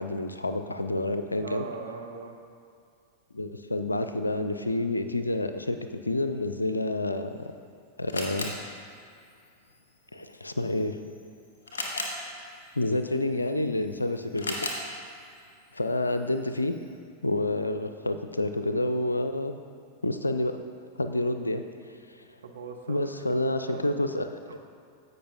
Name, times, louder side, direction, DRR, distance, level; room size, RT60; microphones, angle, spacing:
voice 1, 0.0-1.7 3.3-5.8 6.1-7.5 8.0-8.6 10.1-11.0 12.8-14.5 15.7-16.8 17.2-19.6 20.0-20.6 21.0-21.6 22.2-22.3 22.9-24.6, left 2 dB, 80° left, 8 dB, 0.4 m, -28 dB
voice 2, 1.4-2.4 22.4-23.1 23.7-23.8 24.5-24.6, right 5 dB, 65° right, 3 dB, 0.8 m, -39 dB
Camera, 7.1-17.0, left 2 dB, 65° left, 1.2 m, -40 dB
16.0 x 5.5 x 2.7 m, 2.4 s
figure-of-eight pair, 90°, 0 cm